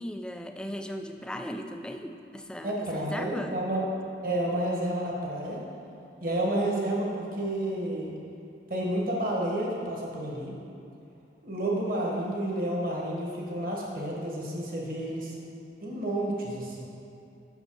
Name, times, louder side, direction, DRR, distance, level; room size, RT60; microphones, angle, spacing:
voice 1, 0.0-3.6, equal, 5° left, 5 dB, 0.3 m, -37 dB
voice 2, 2.6-3.8 4.2-5.6 6.2-8.2 8.7-10.5 11.4-15.3 15.8-16.8, right 1 dB, 55° right, -3 dB, 1.4 m, -30 dB
6.3 x 5.4 x 6.2 m, 2.6 s
head